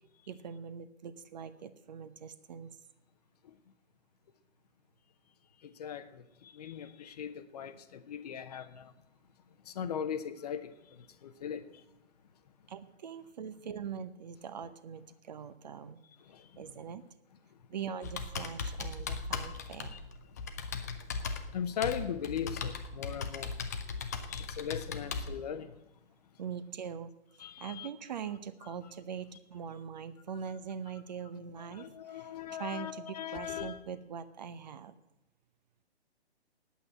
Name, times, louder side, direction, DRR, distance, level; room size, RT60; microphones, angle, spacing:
voice 1, 0.3-2.7 12.7-16.0 16.6-17.0 17.7-20.1 26.4-27.1 27.4-35.0, right 7 dB, 40° right, 0.7 m, -42 dB
voice 2, 5.6-8.9 9.6-11.8 16.3-16.6 19.9-20.0 21.5-23.5 24.1-25.8 27.4-27.9 31.6-33.8, left 8 dB, 35° left, 0.8 m, -39 dB
Computer keyboard, 18.0-25.3, left 4 dB, 15° left, 0.4 m, -38 dB
9.2 x 8.4 x 8.9 m
figure-of-eight pair, 125°, 33 cm